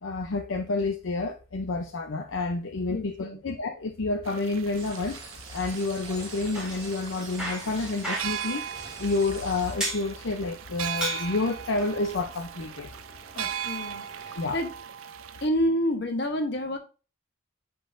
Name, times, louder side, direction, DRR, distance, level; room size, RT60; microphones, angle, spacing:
voice 1, 0.0-5.2 5.5-8.6 9.0-12.9 14.3-14.6, left 3 dB, 75° left, 0.6 m, -29 dB
voice 2, 2.9-3.4 13.3-14.7 15.4-16.8, equal, 55° left, 1.0 m, -29 dB
sound 1, 4.2-15.5, right 9 dB, 80° right, 0.4 m, -39 dB
sound 2, 4.7-9.7, right 2 dB, 35° right, 3.0 m, -44 dB
Bicycle, 6.3-14.6, right 1 dB, 5° right, 2.1 m, -38 dB
10.0 x 3.8 x 2.6 m
head